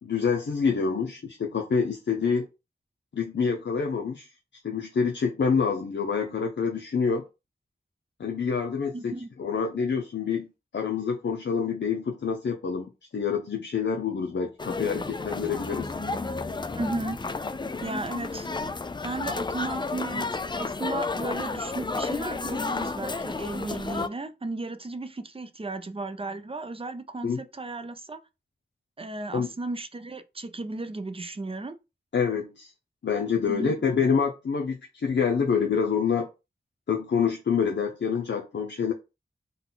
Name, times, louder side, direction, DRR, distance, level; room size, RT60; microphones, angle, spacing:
voice 1, 0.0-2.5 3.1-4.3 4.6-7.2 8.2-9.1 9.4-15.9 27.2-27.4 29.3-29.5 32.1-32.7 33.0-36.3 36.9-38.9, left 6 dB, 80° left, 0.6 m, -27 dB
voice 2, 8.9-9.3 16.7-17.2 17.8-18.5 19.0-28.2 29.0-31.8 33.5-33.7, right 2 dB, 30° right, 0.5 m, -35 dB
sound 1, 14.6-24.1, left 3 dB, 25° left, 0.3 m, -32 dB
3.9 x 2.2 x 3.8 m
wide cardioid pair, 65°, 19 cm